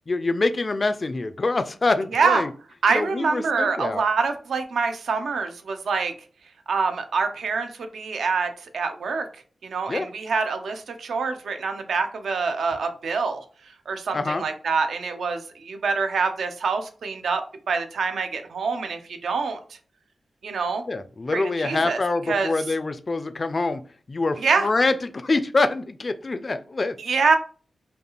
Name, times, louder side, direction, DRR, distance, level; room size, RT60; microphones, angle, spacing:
voice 1, 0.1-2.5 2.9-4.0 9.9-10.1 14.1-14.4 20.9-23.8 24.1-27.0, left 3 dB, 35° left, 11 dB, 0.3 m, -25 dB
voice 2, 2.1-2.4 2.8-6.1 6.7-9.3 9.6-13.4 13.9-19.6 20.4-20.8 21.3-22.0 22.3-22.5 24.4-24.7 27.0-27.4, right 4 dB, 85° right, 6 dB, 0.6 m, -25 dB
5.1 x 2.4 x 3.0 m, 0.40 s
wide cardioid pair, 145°, 0 cm